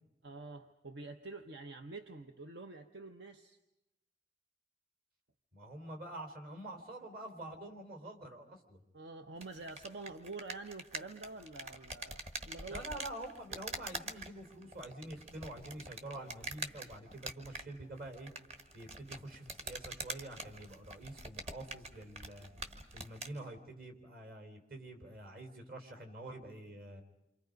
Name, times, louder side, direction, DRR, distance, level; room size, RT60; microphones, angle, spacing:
voice 1, 0.2-3.6 7.5-7.6 8.9-12.8, right 3 dB, 80° right, 7 dB, 1.0 m, -47 dB
voice 2, 5.5-8.8 12.7-18.3 18.7-22.5 22.9-27.0, right 1 dB, 55° right, 5 dB, 3.8 m, -47 dB
sound 1, 9.4-23.4, right 3 dB, 35° right, 1.4 m, -46 dB
29.0 x 26.5 x 5.3 m, 0.92 s
head